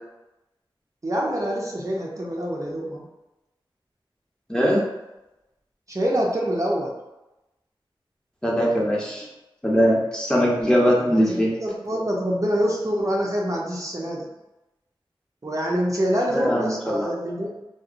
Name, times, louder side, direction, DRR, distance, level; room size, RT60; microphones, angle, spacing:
voice 1, 1.0-3.0 5.9-6.9 11.0-14.3 15.4-17.6, equal, 35° right, -3 dB, 0.5 m, -26 dB
voice 2, 4.5-4.8 8.4-9.3 9.6-11.5 16.3-17.1, equal, 10° left, -4 dB, 0.7 m, -21 dB
2.8 x 2.0 x 2.5 m, 0.97 s
cardioid pair, 45°, 9 cm